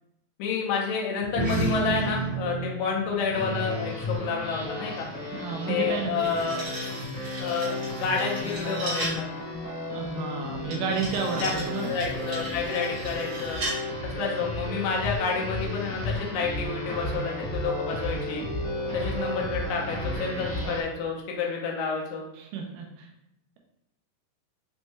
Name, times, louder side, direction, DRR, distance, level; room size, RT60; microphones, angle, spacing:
voice 1, 0.4-5.1 5.7-6.6 7.4-9.3 11.4-11.5 11.9-13.6 14.0-18.4 18.9-22.2, left 5 dB, 80° left, -1 dB, 2.3 m, -29 dB
sound 1, 1.2-6.0, right 2 dB, 45° right, 1.5 m, -32 dB
sound 2, 3.3-20.8, left 1 dB, 60° left, 1.1 m, -33 dB
voice 2, 5.3-6.3 9.9-11.9 22.4-23.1, right 5 dB, 80° right, 2 dB, 2.2 m, -31 dB
sound 3, 5.9-9.3 10.7-13.8, right 1 dB, 60° right, 1.4 m, -37 dB
6.1 x 2.2 x 3.1 m, 0.83 s
omnidirectional pair, 4.0 m